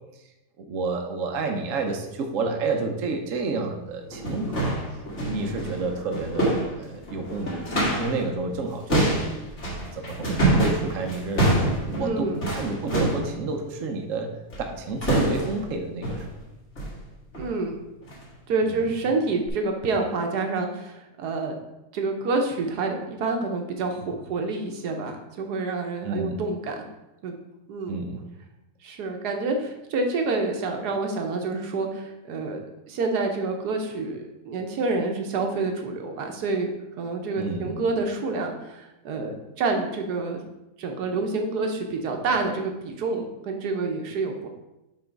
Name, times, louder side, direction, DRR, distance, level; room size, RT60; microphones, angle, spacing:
voice 1, 0.6-4.7 5.2-7.6 8.0-9.3 9.9-11.6 11.9-14.3 14.6-16.2 18.7-18.8 26.0-26.4 27.9-28.2 37.4-37.7, right 3 dB, 60° right, 3 dB, 1.1 m, -29 dB
sound 1, 3.4-3.5 4.0-8.2 8.5-13.3 14.5-14.7 15.0-15.7 16.0-16.3 16.8-17.0 17.3-17.5 18.0-18.2 18.7-18.8 19.5-19.6, right 1 dB, 45° left, 2.1 m, -26 dB
voice 2, 12.0-12.4 17.3-17.7 18.5-21.5 21.9-26.7 27.2-27.3 27.7-28.0 28.8-32.6 32.9-36.7 37.0-40.4 40.8-44.5, right 3 dB, 75° right, 3 dB, 1.4 m, -28 dB
7.0 x 3.4 x 5.1 m, 0.95 s
omnidirectional pair, 1.7 m